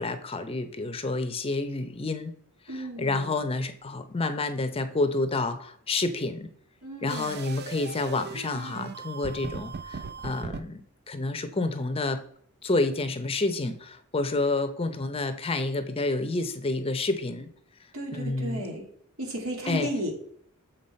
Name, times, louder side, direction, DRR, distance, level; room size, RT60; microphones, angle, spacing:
voice 1, 0.0-2.3 2.7-6.5 7.0-10.8 11.1-12.2 12.6-17.5 18.1-18.7 19.7-19.9, left 2 dB, 25° left, 9 dB, 0.6 m, -29 dB
voice 2, 2.7-3.4 6.8-7.4 17.9-18.9 19.2-20.1, equal, 80° right, 0 dB, 2.4 m, -34 dB
sound 1, 7.1-10.6, right 5 dB, 50° right, 0.5 m, -39 dB
7.1 x 5.5 x 4.3 m, 0.63 s
head